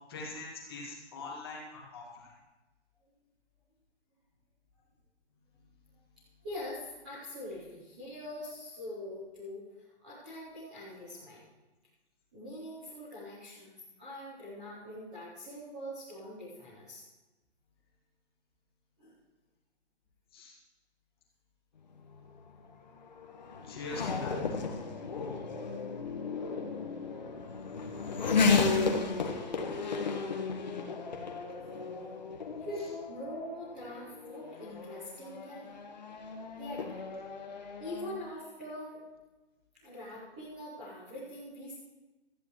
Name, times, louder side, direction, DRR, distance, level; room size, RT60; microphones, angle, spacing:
voice 1, 0.1-2.3 20.3-20.5 23.6-24.4, left 3 dB, 20° left, -2 dB, 1.9 m, -42 dB
voice 2, 6.4-9.7 10.0-11.4 12.3-13.7 14.0-17.1 19.0-19.1 31.6-31.8 32.6-35.7 36.6-37.1 37.8-39.0 39.8-41.8, left 1 dB, 5° right, -10 dB, 0.8 m, -43 dB
Race car auto racing / Accelerating revving vroom, 21.9-38.2, left 4 dB, 40° left, 1.3 m, -34 dB
18.0 x 13.5 x 3.1 m, 1.1 s
hypercardioid pair, 175°, 34 cm